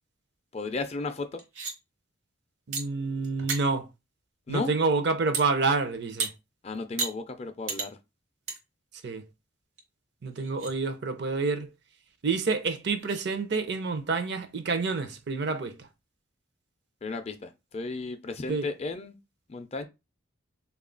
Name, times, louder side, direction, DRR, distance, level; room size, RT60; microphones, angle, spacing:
voice 1, 0.5-1.4 4.5-4.7 6.6-8.0 17.0-19.2 19.5-19.9, left 3 dB, 30° left, 0.4 m, -34 dB
sound 1, 1.4-1.7 2.7-2.8 3.2-3.6 5.3-5.5 6.2-6.3 7.0-7.1 7.7-7.9 8.5-8.6 9.0-9.1 9.8-9.9 10.4-10.7 12.4-12.5 13.0-13.2, right 4 dB, 75° right, 1.0 m, -32 dB
voice 2, 2.7-3.9 4.5-6.3 9.0-9.2 10.2-11.7 12.2-15.9 18.5-18.7, right 4 dB, 55° right, 0.5 m, -28 dB
3.5 x 2.3 x 3.8 m
head